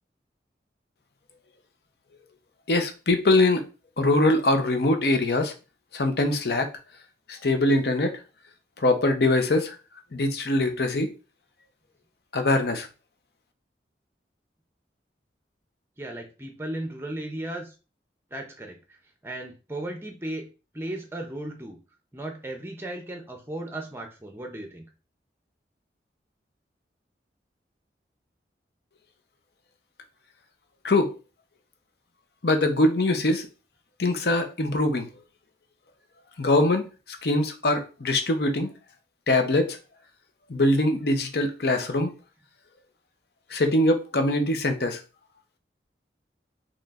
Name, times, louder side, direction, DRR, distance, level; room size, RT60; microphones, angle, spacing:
voice 1, 2.7-3.6 4.0-5.5 5.9-6.7 7.3-8.2 8.8-9.7 10.1-11.1 12.3-12.9 30.8-31.1 32.4-33.5 34.0-35.1 36.4-38.7 39.3-39.8 40.5-42.1 43.5-45.0, left 2 dB, 60° left, 0.7 m, -23 dB
voice 2, 16.0-17.7 18.3-19.0 19.2-20.5 20.7-21.8 22.1-24.8, right 1 dB, 15° right, 0.6 m, -36 dB
4.3 x 3.0 x 2.5 m
head